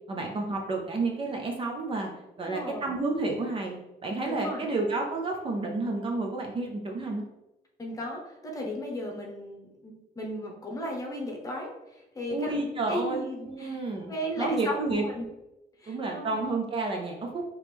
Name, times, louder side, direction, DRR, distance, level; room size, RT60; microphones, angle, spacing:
voice 1, 0.1-2.1 2.4-7.2 12.3-15.0 15.9-17.4, right 3 dB, 30° right, 1 dB, 0.5 m, -30 dB
voice 2, 2.5-3.0 4.2-4.7 7.8-12.6 12.9-13.8 14.1-15.2 15.8-16.4, equal, 20° left, 0 dB, 0.9 m, -35 dB
4.9 x 3.0 x 3.4 m, 0.97 s
cardioid pair, 160°, 17 cm